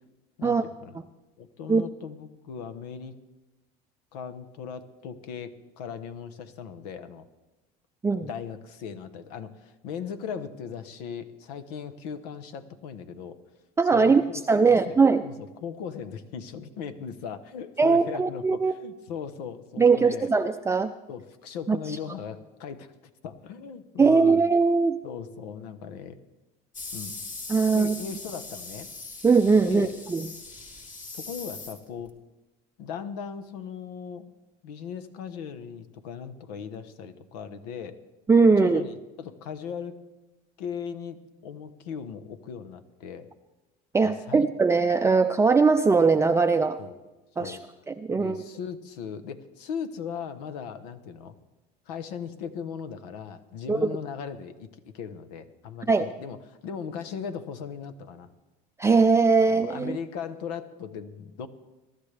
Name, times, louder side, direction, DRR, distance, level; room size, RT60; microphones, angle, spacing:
voice 1, 0.4-1.0 1.4-3.2 4.1-7.2 8.2-13.4 13.9-15.0 15.2-20.3 21.1-22.9 23.2-24.4 25.0-26.2 26.9-27.2 27.7-28.9 29.6-29.9 31.1-32.1 32.8-34.3 34.6-38.0 38.5-40.0 40.6-43.3 44.0-44.5 46.8-47.0 47.4-47.6 48.1-51.3 51.9-54.7 54.9-58.3 59.4-61.5, left 7 dB, 90° left, 12 dB, 1.0 m, -38 dB
voice 2, 13.8-14.2 14.5-15.2 17.8-18.7 19.8-20.9 21.7-21.8 24.0-25.0 27.5-27.9 29.2-30.3 38.3-38.8 43.9-46.8 47.4-47.6 47.9-48.4 53.7-53.9 55.9-56.1 58.8-60.0, right 4 dB, 15° right, 7 dB, 0.4 m, -20 dB
sound 1, 26.7-32.1, left 3 dB, 40° left, 2.6 m, -40 dB
22.5 x 12.0 x 3.4 m, 1.1 s
supercardioid pair, 95°, 20 cm